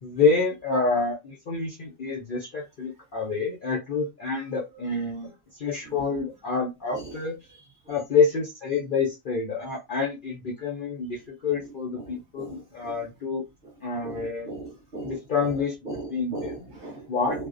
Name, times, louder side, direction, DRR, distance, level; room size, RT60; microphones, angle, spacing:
voice 1, 0.0-7.3 7.9-13.4 13.8-14.5 15.0-15.7 16.1-16.5 17.1-17.5, left 4 dB, 55° left, 0.6 m, -27 dB
voice 2, 5.8-6.2 6.9-7.2 7.5-7.6 7.8-7.9 11.5-13.0 14.0-15.6 15.8-17.5, right 2 dB, 50° right, 0.7 m, -39 dB
2.5 x 2.0 x 2.4 m
omnidirectional pair, 1.5 m